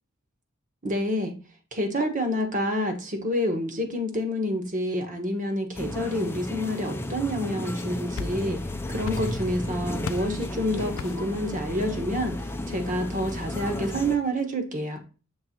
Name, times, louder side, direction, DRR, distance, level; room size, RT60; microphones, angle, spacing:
voice 1, 0.8-1.3 1.7-8.6 8.9-12.4 12.7-15.0, equal, 40° right, 5 dB, 1.2 m, -28 dB
sound 1, 5.7-14.2, left 1 dB, 10° left, 0.6 m, -33 dB
sound 2, 8.2-8.7 9.0-9.6 10.0-10.4 11.0-11.4, left 5 dB, 65° left, 0.5 m, -37 dB
6.7 x 3.3 x 4.3 m, 0.34 s
head